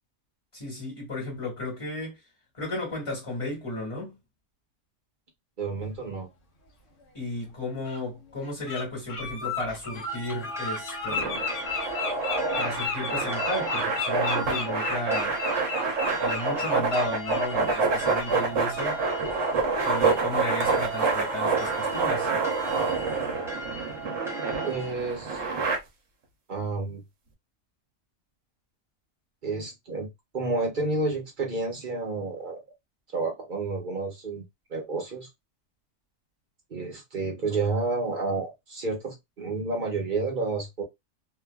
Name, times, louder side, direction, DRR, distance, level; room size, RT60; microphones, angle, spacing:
voice 1, 0.5-2.2 2.5-4.2 7.1-11.5 12.6-15.4 16.2-19.0 19.8-22.3, left 1 dB, 25° left, 1.7 m, -34 dB
voice 2, 5.6-6.3 24.6-25.4 26.5-27.0 29.4-30.1 30.3-32.6 33.1-34.4 34.7-35.3 36.7-40.8, right 3 dB, 40° right, 1.0 m, -30 dB
Bird, 7.0-7.1 7.8-8.0 8.4-8.8 9.1-17.8 18.1-18.3 18.7-18.9, left 5 dB, 60° left, 1.2 m, -33 dB
sound 1, 10.1-24.9, right 1 dB, 5° right, 0.5 m, -39 dB
sound 2, 11.1-25.8, right 4 dB, 65° right, 1.0 m, -27 dB
2.7 x 2.5 x 2.3 m
omnidirectional pair, 1.3 m